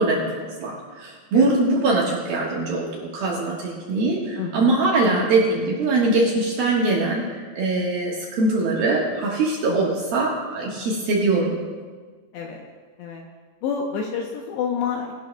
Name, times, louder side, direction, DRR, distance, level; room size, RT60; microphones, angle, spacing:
voice 1, 0.0-11.6, right 2 dB, 65° right, -4 dB, 2.6 m, -22 dB
voice 2, 4.4-5.3 9.7-10.0 12.3-12.6 13.0-13.3 13.6-15.1, left 6 dB, 75° left, 1 dB, 2.7 m, -29 dB
21.5 x 12.0 x 2.3 m, 1.5 s
omnidirectional pair, 5.8 m